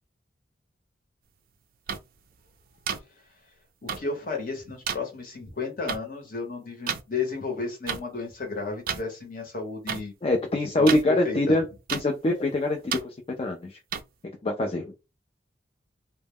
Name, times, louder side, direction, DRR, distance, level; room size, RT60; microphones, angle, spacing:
sound 1, 1.9-2.0 2.9-3.0 3.9-4.0 4.9-5.0 5.9-6.0 6.9-7.0 7.9-8.0 8.9-9.0 9.9-10.0 10.9-11.0 11.9-12.0 12.9-13.0 13.9-14.0, right 7 dB, 50° right, 0.3 m, -29 dB
voice 1, 3.8-10.1 10.8-11.6, left 4 dB, 50° left, 3 dB, 0.9 m, -33 dB
voice 2, 10.2-11.7 11.9-13.8 14.4-14.9, left 1 dB, 30° left, 3 dB, 0.3 m, -24 dB
2.1 x 2.1 x 3.4 m, 0.27 s
head